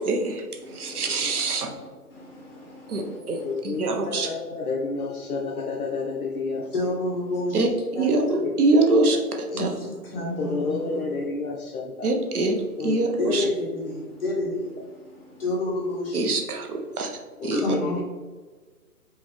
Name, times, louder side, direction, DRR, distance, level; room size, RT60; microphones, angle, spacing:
voice 1, 0.0-0.4 0.7-1.7 2.9-4.3 7.5-7.7 7.9-9.2 9.6-9.7 12.0-12.6 12.8-13.4 16.1-17.1 17.4-17.6, right 2 dB, 70° right, 3 dB, 1.0 m, -24 dB
voice 2, 0.6-3.6 3.9-4.1 6.7-8.5 9.5-11.2 12.5-12.6 12.9-16.7 17.5-18.0, left 1 dB, 40° left, -6 dB, 1.4 m, -31 dB
voice 3, 3.2-6.7 8.4-8.5 10.4-12.1 12.8-13.0 17.4-18.0, left 4 dB, 70° left, 0 dB, 0.7 m, -30 dB
5.3 x 2.7 x 3.6 m, 1.4 s
hypercardioid pair, 160°, 46 cm